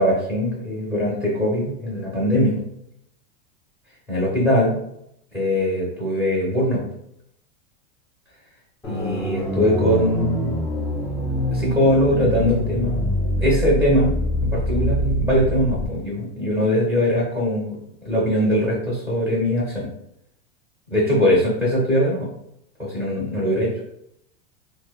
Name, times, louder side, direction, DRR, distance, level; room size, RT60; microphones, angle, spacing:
voice 1, 0.0-2.6 4.1-4.8 5.3-6.8 8.9-10.6 11.5-13.1 13.4-14.1 14.4-17.8 18.0-19.9 20.9-22.3 22.8-23.7, equal, 10° right, -8 dB, 1.0 m, -21 dB
sound 1, 8.8-15.9, equal, 5° left, 0.3 m, -24 dB
2.8 x 2.1 x 2.3 m, 0.76 s
supercardioid pair, 140°, 31 cm